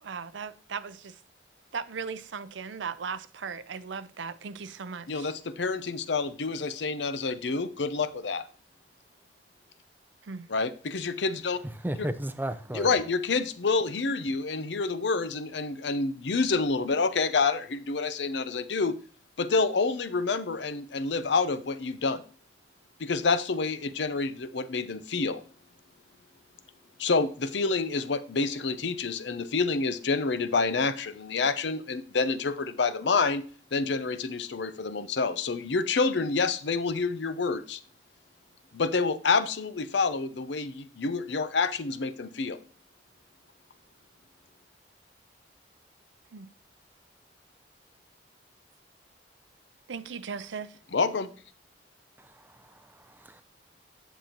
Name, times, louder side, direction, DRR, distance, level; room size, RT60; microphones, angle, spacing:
voice 1, 0.0-1.2 1.7-5.3 10.2-10.5 46.3-46.5 49.9-50.8, right 5 dB, 85° right, 0.6 m, -37 dB
voice 2, 5.1-8.4 10.5-11.6 12.7-18.9 19.4-22.2 23.0-25.4 27.0-33.4 33.7-37.8 38.7-42.6 50.9-51.3, left 4 dB, 75° left, 0.6 m, -28 dB
voice 3, 11.6-13.0 52.2-53.4, right 1 dB, 10° right, 0.5 m, -35 dB
10.0 x 6.8 x 2.9 m
head